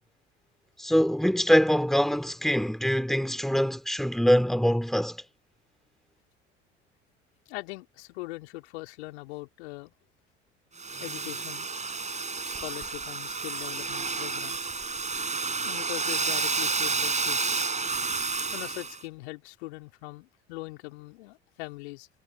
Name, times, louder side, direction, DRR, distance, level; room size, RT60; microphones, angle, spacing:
voice 1, 0.8-5.2, equal, ahead, 2.7 m, -24 dB
voice 2, 7.5-9.9 11.0-11.7 12.4-14.7 15.6-17.6 18.5-22.1, left 22 dB, 70° left, 4.0 m, -41 dB
Domestic sounds home sounds, 10.8-19.0, right 4 dB, 20° right, 4.3 m, -30 dB
figure-of-eight pair, 60°, 34 cm